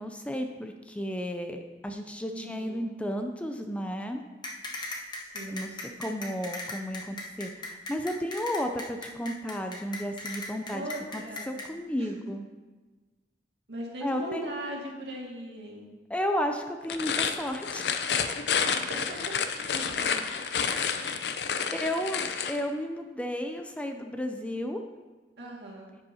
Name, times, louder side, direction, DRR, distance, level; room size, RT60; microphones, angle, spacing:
voice 1, 0.0-4.2 5.5-10.8 11.1-12.5 14.0-14.5 16.1-18.1 20.7-20.8 21.7-24.8, equal, 5° left, 5 dB, 0.4 m, -33 dB
voice 2, 2.3-2.9 5.2-5.8 10.7-11.6 11.9-12.1 13.7-15.9 18.6-19.3 19.7-20.2 25.4-25.9, right 1 dB, 75° right, -3 dB, 2.0 m, -39 dB
sound 1, 4.4-11.7, left 2 dB, 25° left, 0.9 m, -37 dB
sound 2, 16.8-22.6, left 6 dB, 75° left, 0.5 m, -29 dB
10.5 x 7.8 x 2.8 m, 1.3 s
head